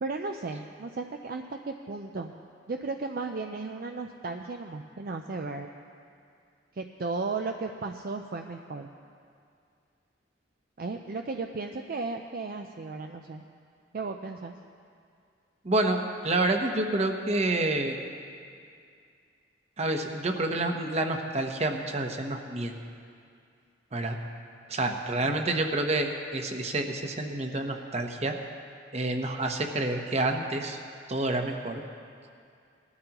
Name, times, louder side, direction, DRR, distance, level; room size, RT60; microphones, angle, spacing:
voice 1, 0.0-2.4 2.7-5.7 6.7-8.9 10.8-13.4 13.9-14.5, right 3 dB, 55° right, 4 dB, 0.5 m, -35 dB
voice 2, 15.6-18.0 19.8-22.7 23.9-24.2 24.7-28.3 28.9-30.8 31.1-31.8, right 2 dB, 35° right, 4 dB, 0.9 m, -28 dB
19.5 x 12.5 x 3.0 m, 2.3 s
head